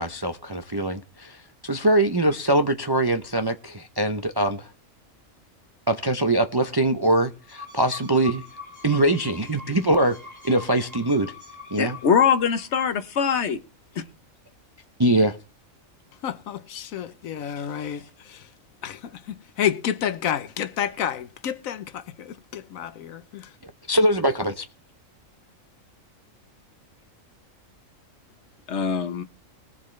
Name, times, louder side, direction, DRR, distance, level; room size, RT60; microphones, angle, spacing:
voice 1, 0.0-4.7 5.9-8.4 8.8-10.2 10.4-11.3 11.7-12.0 15.0-15.4 23.6-24.6, right 1 dB, 30° right, 0.4 m, -23 dB
sound 1, 7.3-12.6, left 3 dB, 65° right, 6.6 m, -43 dB
voice 2, 11.8-13.6 28.7-29.2, left 7 dB, 60° left, 1.2 m, -22 dB
voice 3, 16.2-18.5 18.8-23.6, left 9 dB, 85° left, 1.2 m, -30 dB
20.5 x 7.3 x 3.2 m
omnidirectional pair, 1.4 m